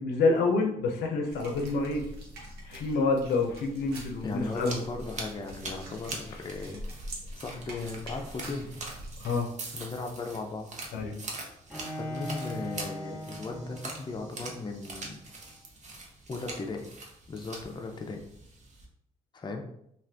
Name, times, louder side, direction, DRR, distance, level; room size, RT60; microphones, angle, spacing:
voice 1, 0.0-2.0 2.7-4.8 9.2-9.5 10.9-11.1, left 3 dB, 90° left, 3 dB, 0.6 m, -27 dB
sound 1, 1.3-9.3, right 1 dB, 80° right, 0.8 m, -44 dB
sound 2, 3.7-18.9, right 2 dB, 45° right, 0.7 m, -44 dB
voice 2, 4.2-6.8 7.3-8.7 9.7-10.7 12.0-15.2 16.3-16.9 17.3-18.2 19.3-19.6, left 3 dB, 25° left, 3 dB, 0.5 m, -37 dB
Bowed string instrument, 11.7-14.7, left 1 dB, ahead, 0.9 m, -40 dB
2.5 x 2.4 x 3.3 m, 0.74 s
supercardioid pair, 70°, 17 cm